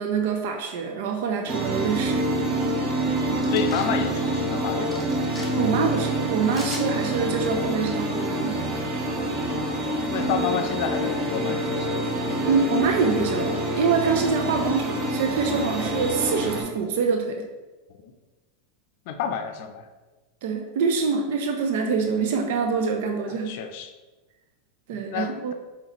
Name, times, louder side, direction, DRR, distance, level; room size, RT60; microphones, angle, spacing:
voice 1, 0.0-2.2 5.5-8.6 12.5-17.5 20.4-23.5 24.9-25.5, right 5 dB, 70° right, 3 dB, 0.5 m, -25 dB
sound 1, 1.5-16.6, right 1 dB, 35° right, 0.9 m, -26 dB
sound 2, 3.4-3.9 4.9-5.5 6.5-6.9, left 1 dB, ahead, 0.9 m, -39 dB
voice 2, 3.5-5.1 9.3-9.8 10.1-12.1 18.0-18.1 19.1-19.9 23.3-23.9 24.9-25.5, left 7 dB, 60° left, 7 dB, 0.5 m, -30 dB
4.4 x 4.0 x 2.9 m, 1.2 s
supercardioid pair, 120°, 0 cm